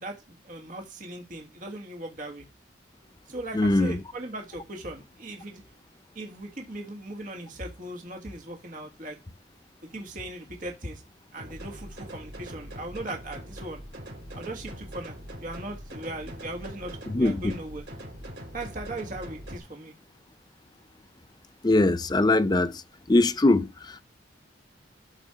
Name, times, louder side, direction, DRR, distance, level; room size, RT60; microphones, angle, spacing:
voice 1, 0.0-2.4 3.3-5.6 6.1-9.2 9.9-11.0 11.3-13.8 14.3-17.8 18.5-19.9, right 1 dB, 45° right, 1.6 m, -38 dB
voice 2, 3.5-4.0 17.1-17.4 21.6-22.8 23.1-24.0, left 2 dB, 20° left, 0.5 m, -22 dB
sound 1, 11.4-19.6, equal, 60° right, 3.9 m, -42 dB
12.0 x 4.4 x 4.9 m
head